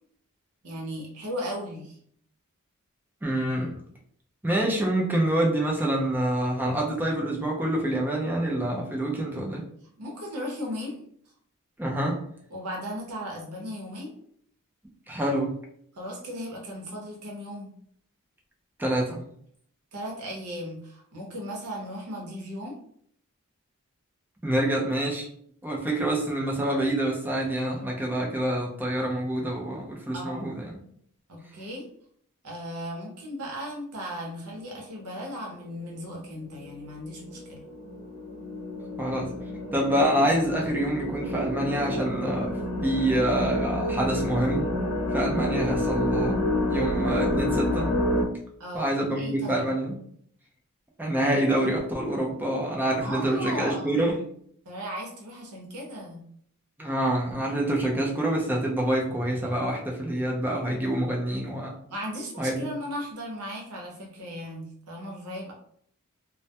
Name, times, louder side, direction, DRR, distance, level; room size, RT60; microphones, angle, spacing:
voice 1, 0.6-2.0 10.0-10.9 12.5-14.1 16.0-17.7 19.9-22.7 30.1-30.5 31.3-31.8 32.4-37.7 48.6-49.6 53.0-54.2 54.6-56.2 61.9-65.5, equal, 80° right, -1 dB, 0.7 m, -36 dB
voice 2, 3.2-3.8 4.4-9.6 11.8-12.2 15.1-15.5 18.8-19.2 24.4-25.3 25.6-30.8 39.0-39.3 39.7-42.5 42.8-44.6 45.1-46.4 46.7-48.0 48.7-50.0 51.0-54.1 56.8-61.7 62.4-62.7, right 1 dB, 10° right, -1 dB, 0.4 m, -26 dB
sound 1, 34.5-35.0 35.9-36.0 36.5-48.2, left 1 dB, 65° left, 0.5 m, -29 dB
2.2 x 2.1 x 2.7 m, 0.64 s
head